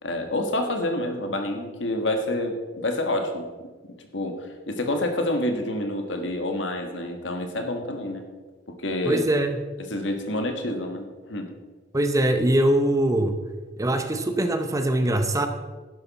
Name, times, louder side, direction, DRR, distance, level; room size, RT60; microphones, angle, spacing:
voice 1, 0.0-3.7 4.1-8.2 8.8-9.2 9.9-11.5, left 1 dB, 80° left, 5 dB, 1.5 m, -28 dB
voice 2, 9.1-9.6 11.9-13.4 13.8-15.5, right 1 dB, 20° right, 7 dB, 0.8 m, -22 dB
11.0 x 11.0 x 4.2 m, 1.3 s
head